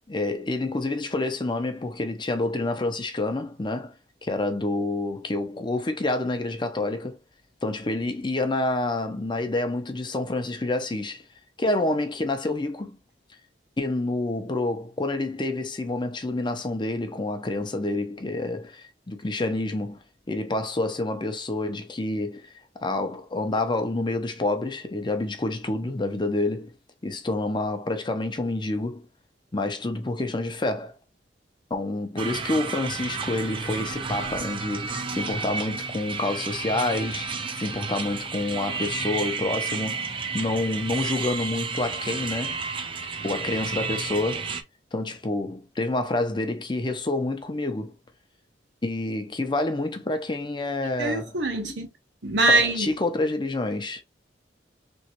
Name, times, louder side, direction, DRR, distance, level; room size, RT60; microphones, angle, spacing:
voice 1, 0.1-3.9 4.2-7.2 7.6-11.2 11.6-13.0 13.8-20.0 20.3-22.5 22.8-26.7 27.0-29.1 29.5-30.9 31.7-42.6 43.2-44.5 44.9-47.9 48.8-51.3 52.5-54.0, left 2 dB, 25° left, 0.6 m, -28 dB
sound 1, 32.2-44.6, right 5 dB, 30° right, 0.4 m, -32 dB
voice 2, 51.0-51.9 52.2-52.9, right 2 dB, 80° right, 1.0 m, -23 dB
3.4 x 3.1 x 2.8 m
head